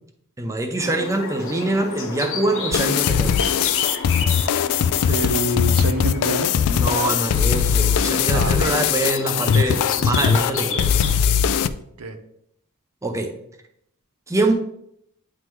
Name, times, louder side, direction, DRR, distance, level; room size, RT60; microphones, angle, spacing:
voice 1, 0.4-3.4 6.7-10.9 13.0-13.3 14.3-14.5, right 2 dB, 15° right, 4 dB, 0.5 m, -24 dB
sound 1, 0.8-11.2, left 4 dB, 60° left, 0.9 m, -32 dB
sound 2, 2.7-11.7, left 7 dB, 80° left, 0.3 m, -20 dB
voice 2, 5.1-6.5 8.3-8.7 12.0-12.2, right 1 dB, 80° right, 7 dB, 0.7 m, -26 dB
9.4 x 3.6 x 3.0 m, 0.74 s
head